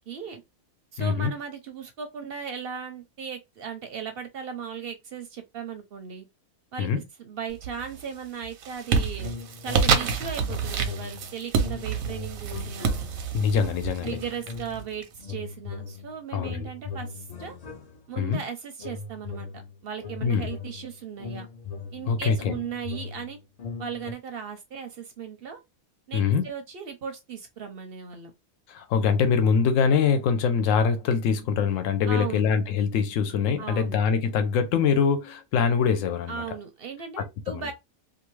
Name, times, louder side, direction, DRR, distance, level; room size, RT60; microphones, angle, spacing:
voice 1, 0.1-0.4 0.9-6.3 6.7-9.3 9.6-12.9 14.0-17.6 18.1-19.5 19.8-21.5 21.9-23.4 23.8-25.6 26.1-28.3 32.1-32.5 33.6-34.0 36.3-37.7, right 7 dB, 60° right, 0.6 m, -37 dB
voice 2, 1.0-1.3 6.8-7.0 13.3-14.2 16.3-16.7 18.2-18.4 20.2-20.5 22.1-22.5 26.1-26.5 28.7-36.4 37.2-37.7, left 6 dB, 80° left, 0.9 m, -24 dB
sound 1, 7.6-8.0 8.4-15.0, right 6 dB, 85° right, 1.0 m, -28 dB
sound 2, 9.2-10.1 10.4-13.5 14.0-14.9 15.2-18.3 18.8-24.1, left 4 dB, 50° left, 0.4 m, -39 dB
2.5 x 2.4 x 3.1 m
omnidirectional pair, 1.4 m